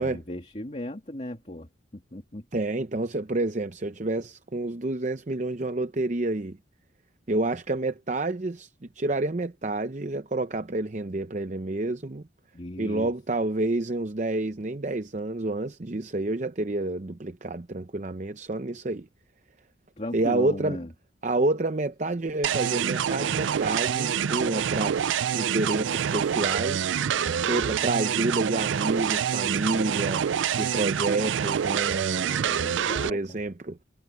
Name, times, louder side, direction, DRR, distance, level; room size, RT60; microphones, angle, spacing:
voice 1, 0.0-2.4 12.5-13.1 20.0-20.9 27.1-27.9 32.5-33.2, left 1 dB, 35° left, 2.5 m, -37 dB
voice 2, 2.5-6.6 7.3-12.3 12.8-19.1 20.1-20.8 21.2-25.0 25.3-27.0 27.5-33.8, right 2 dB, 40° right, 0.7 m, -29 dB
sound 1, 22.4-33.1, right 8 dB, 80° right, 0.4 m, -26 dB
head